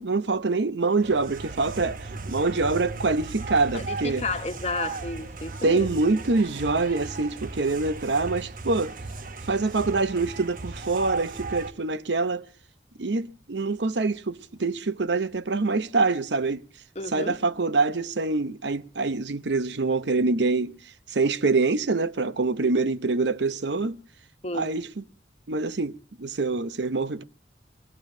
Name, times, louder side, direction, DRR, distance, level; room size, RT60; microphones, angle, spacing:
voice 1, 0.0-4.2 5.6-8.9 9.5-12.5 13.0-16.6 17.1-20.7 21.1-24.0 24.5-25.0 25.5-25.9 26.2-27.2, right 3 dB, 80° right, 0.8 m, -25 dB
sound 1, 1.0-11.7, right 3 dB, 50° right, 1.0 m, -36 dB
voice 2, 3.7-5.9 16.9-17.4 24.4-24.7, left 2 dB, 35° left, 1.3 m, -32 dB
23.0 x 19.0 x 2.7 m
head